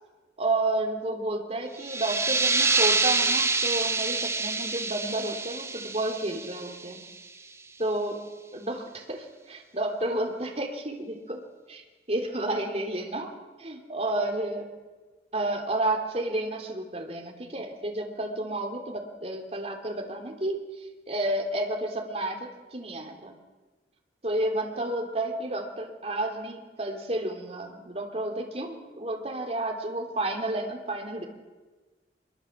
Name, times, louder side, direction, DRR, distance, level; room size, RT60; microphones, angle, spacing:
voice 1, 0.4-7.0 7.8-8.2 8.5-11.4 11.7-11.8 12.1-13.3 13.6-14.7 15.3-20.6 21.1-23.3 24.2-31.3, right 2 dB, 35° right, 3 dB, 3.4 m, -31 dB
sound 1, 1.8-7.2, right 3 dB, 15° right, 1.2 m, -27 dB
25.5 x 23.0 x 7.5 m, 1.3 s
head